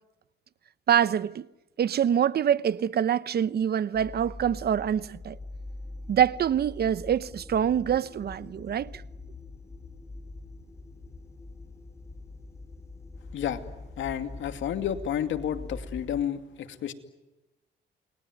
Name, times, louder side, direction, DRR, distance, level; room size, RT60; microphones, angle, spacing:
voice 1, 0.9-1.5 1.8-5.4 6.1-9.0, right 9 dB, 55° right, 0.9 m, -25 dB
sound 1, 3.9-16.2, left 2 dB, 15° left, 4.6 m, -43 dB
voice 2, 13.3-13.6 14.0-16.9, left 9 dB, 75° left, 2.5 m, -31 dB
29.0 x 21.5 x 9.4 m
cardioid pair, 90°, 20 cm